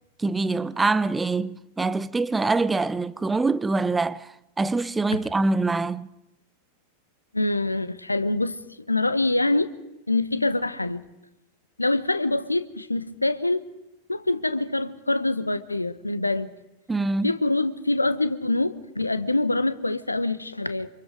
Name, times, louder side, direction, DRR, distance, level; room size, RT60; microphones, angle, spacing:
voice 1, 0.2-6.1 16.9-17.3, right 3 dB, 10° right, 0.8 m, -24 dB
voice 2, 7.3-8.6 8.9-9.7 10.1-11.1 11.8-13.6 14.1-16.5 17.2-20.9, left 2 dB, 85° left, 1.3 m, -25 dB
28.0 x 27.0 x 5.1 m
figure-of-eight pair, 90°, 0 cm